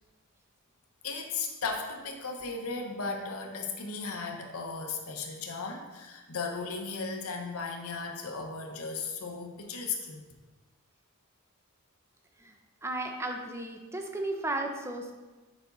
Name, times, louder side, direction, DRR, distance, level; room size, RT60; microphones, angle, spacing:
voice 1, 1.0-10.2, left 4 dB, 70° left, 2 dB, 0.9 m, -36 dB
voice 2, 12.8-15.1, right 2 dB, 10° right, 3 dB, 0.7 m, -34 dB
7.1 x 5.3 x 3.9 m, 1.2 s
head